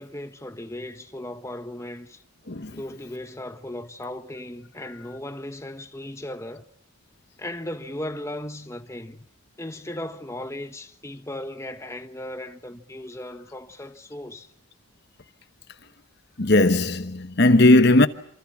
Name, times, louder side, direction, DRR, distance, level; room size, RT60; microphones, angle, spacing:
voice 1, 0.0-2.2 2.7-6.6 7.4-9.3 9.6-14.5, left 1 dB, 15° left, 1.2 m, -36 dB
voice 2, 2.5-2.8 4.8-5.2 16.4-18.1, left 2 dB, 50° left, 1.1 m, -18 dB
27.5 x 27.0 x 6.1 m
head